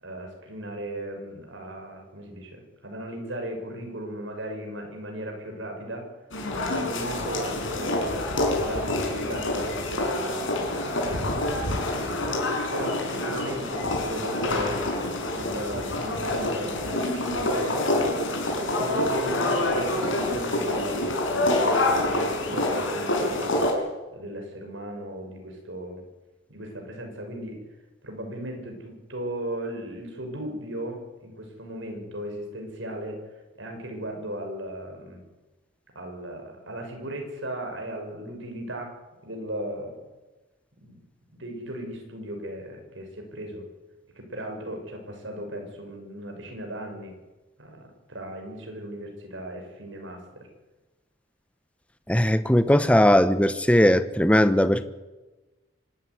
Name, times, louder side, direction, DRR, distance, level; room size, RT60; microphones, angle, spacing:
voice 1, 0.0-6.1 6.5-12.3 12.7-14.9 15.3-26.0 26.5-27.6 28.0-33.2 33.6-35.2 35.9-38.9 39.2-40.0 40.8-41.0 41.3-43.7 44.1-47.1 47.6-50.5, right 1 dB, 75° right, 6.6 m, -36 dB
sound 1, 6.3-23.7, left 1 dB, 85° left, 5.4 m, -27 dB
voice 2, 52.1-54.8, equal, 5° left, 0.9 m, -19 dB
25.0 x 13.5 x 9.6 m
head